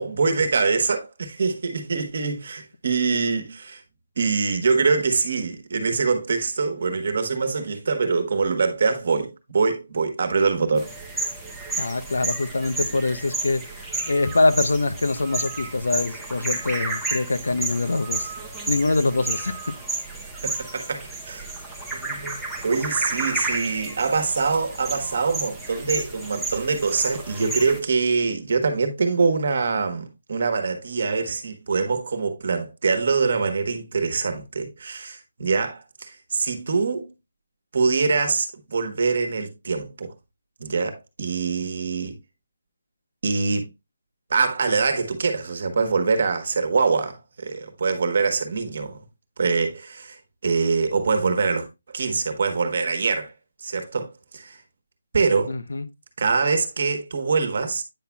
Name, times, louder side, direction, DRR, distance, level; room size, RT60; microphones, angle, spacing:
voice 1, 0.0-3.8 4.2-10.9 20.4-21.5 21.9-22.4 22.6-37.1 37.7-40.1 40.6-42.2 43.2-43.7 44.3-49.0 49.4-50.2 50.4-53.3 53.6-54.6 55.1-55.5 56.2-57.8, right 4 dB, 45° right, 1.3 m, -24 dB
sound 1, 10.8-27.8, right 3 dB, ahead, 0.7 m, -32 dB
voice 2, 11.7-13.6 14.1-18.3 18.7-19.7 55.5-55.9, left 3 dB, 85° left, 0.8 m, -24 dB
9.0 x 5.7 x 2.3 m
hypercardioid pair, 175°, 0 cm